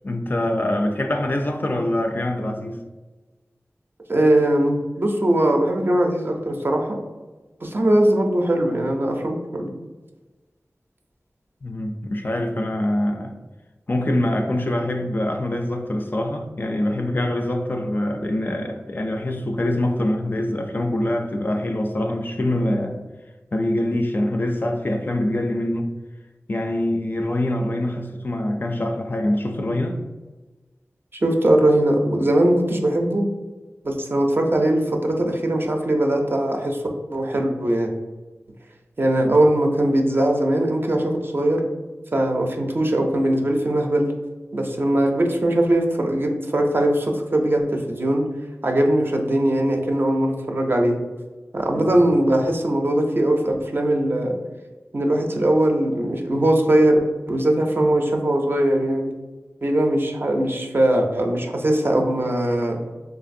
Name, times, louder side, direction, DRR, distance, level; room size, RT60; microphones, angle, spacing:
voice 1, 0.0-2.8 11.6-13.4 13.9-23.0 23.5-25.9 26.5-30.0 39.2-39.3 51.7-51.9, left 1 dB, 40° left, 0.3 m, -24 dB
voice 2, 4.1-7.0 7.6-9.7 31.2-33.3 33.8-36.8 37.1-37.9 39.0-41.6 42.1-44.1 44.5-48.3 48.6-51.0 51.5-54.4 54.9-57.0 57.3-59.1 59.6-62.8, right 1 dB, 45° right, 0.5 m, -20 dB
3.1 x 2.5 x 2.6 m
wide cardioid pair, 60°, 5 cm